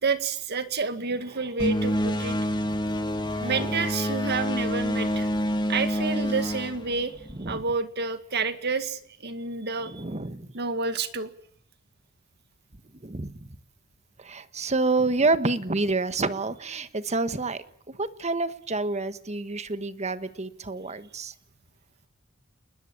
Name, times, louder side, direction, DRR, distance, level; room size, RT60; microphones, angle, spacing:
voice 1, 0.0-2.4 3.4-5.3 5.7-7.1 7.5-10.0 10.5-11.3, right 4 dB, 55° right, 10 dB, 2.0 m, -29 dB
sound 1, 1.6-7.6, equal, 20° left, 2.0 m, -27 dB
voice 2, 3.3-3.8 5.0-5.2 7.4-7.6 9.9-10.5 13.0-13.3 14.2-21.3, right 3 dB, 35° right, 12 dB, 1.4 m, -28 dB
28.5 x 20.0 x 8.7 m, 0.66 s
head